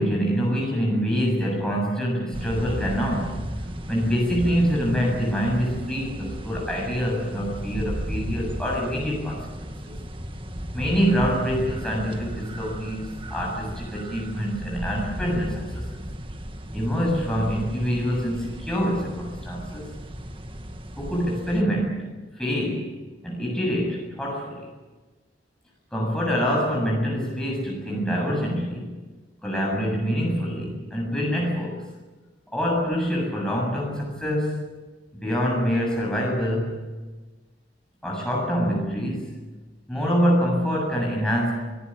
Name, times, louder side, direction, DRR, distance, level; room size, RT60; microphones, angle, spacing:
voice 1, 0.0-3.4 3.9-9.9 10.7-15.9 16.7-19.9 21.0-22.1 22.4-22.9 23.2-24.7 25.9-28.9 29.4-31.8 32.5-34.6 35.2-36.8 38.0-39.3 39.9-41.5, equal, 5° left, -3 dB, 7.4 m, -25 dB
sound 1, 2.3-21.6, equal, 30° right, 1.8 m, -35 dB
25.0 x 19.5 x 8.7 m, 1.3 s
head